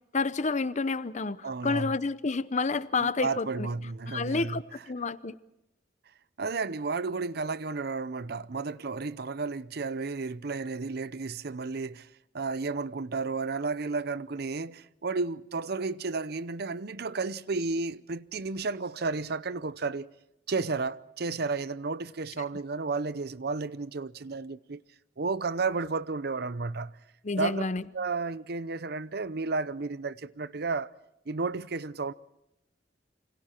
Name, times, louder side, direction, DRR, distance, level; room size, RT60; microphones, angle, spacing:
voice 1, 0.1-3.7 4.1-5.3 27.2-27.8, left 3 dB, 40° left, 0.8 m, -29 dB
voice 2, 1.4-2.0 3.0-4.6 6.4-12.1 12.3-20.1 20.5-24.8 25.2-27.0 27.4-27.6 27.9-30.9 31.3-32.1, right 4 dB, 60° right, 0.7 m, -32 dB
28.0 x 25.5 x 4.4 m
head